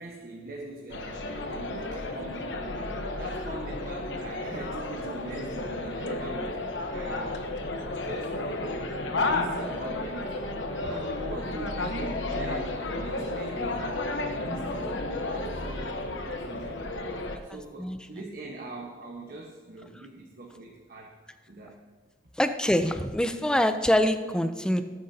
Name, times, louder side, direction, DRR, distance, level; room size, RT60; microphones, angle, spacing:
voice 1, 0.0-2.7 3.2-7.5 7.8-8.7 9.2-15.0 15.3-21.2 21.5-21.8, right 2 dB, 55° right, -1 dB, 1.2 m, -42 dB
sound 1, 0.9-17.4, left 2 dB, 80° left, 1.1 m, -32 dB
voice 2, 22.4-24.8, left 1 dB, 5° left, 8 dB, 0.5 m, -24 dB
18.0 x 9.5 x 2.8 m, 1.5 s
head